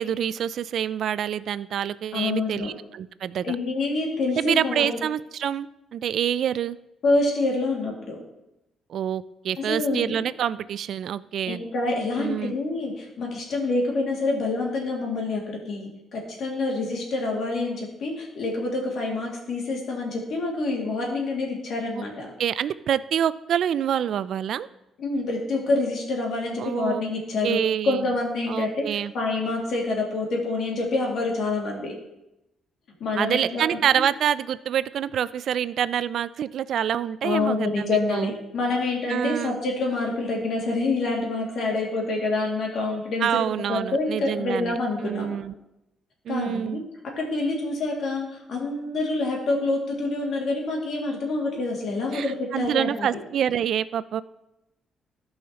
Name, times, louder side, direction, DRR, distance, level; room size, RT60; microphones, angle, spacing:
voice 1, 0.0-3.6 4.4-6.8 8.9-11.6 12.2-12.5 21.9-22.0 22.4-24.7 26.6-27.0 27.4-28.0 28.5-29.1 33.2-38.3 39.1-39.6 43.2-44.8 45.0-45.5 46.3-46.8 52.1-54.2, right 9 dB, 70° right, 17 dB, 0.3 m, -26 dB
voice 2, 2.1-2.7 3.4-5.0 7.0-8.2 9.7-10.2 11.5-22.3 25.0-27.6 27.8-31.9 33.0-33.8 37.2-43.4 43.7-45.3 46.3-46.8 47.2-53.1, left 2 dB, 65° left, -1 dB, 2.2 m, -27 dB
13.5 x 5.6 x 2.9 m, 0.90 s
cardioid pair, 90°, 0 cm